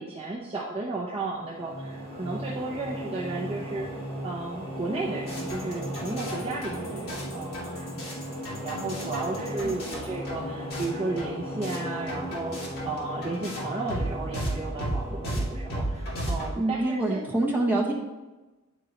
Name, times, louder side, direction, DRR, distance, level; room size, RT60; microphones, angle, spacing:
voice 1, 0.0-3.9 4.2-17.2, right 3 dB, 25° right, -4 dB, 0.7 m, -34 dB
Ghost Transition, 1.3-16.6, equal, 20° left, 2.1 m, -37 dB
sound 1, 5.3-11.8 12.1-16.5, equal, 45° left, 2.2 m, -35 dB
voice 2, 16.6-17.9, right 2 dB, 10° right, -3 dB, 1.2 m, -25 dB
9.9 x 4.5 x 2.9 m, 1.1 s
head